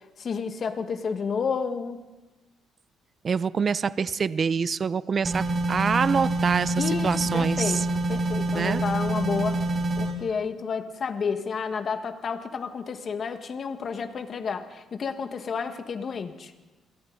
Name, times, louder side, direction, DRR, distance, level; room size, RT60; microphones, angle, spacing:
voice 1, 0.0-2.0 6.8-9.6 10.0-16.5, left 5 dB, 45° left, 7 dB, 1.7 m, -31 dB
voice 2, 3.2-7.9 8.5-8.8, right 6 dB, 40° right, 17 dB, 0.5 m, -26 dB
sound 1, 5.2-10.1, right 2 dB, 20° right, 5.2 m, -26 dB
29.5 x 21.5 x 4.1 m, 1.1 s
cardioid pair, 105°, 0 cm